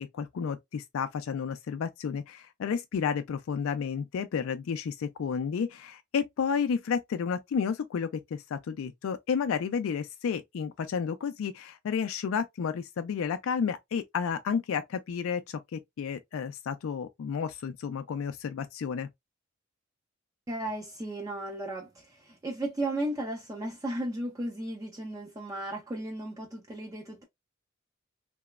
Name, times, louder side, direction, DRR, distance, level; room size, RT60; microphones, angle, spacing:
voice 1, 0.1-19.1, left 6 dB, 75° left, 0.3 m, -31 dB
voice 2, 20.5-27.2, right 1 dB, 15° right, 0.4 m, -35 dB
2.9 x 2.0 x 2.2 m
head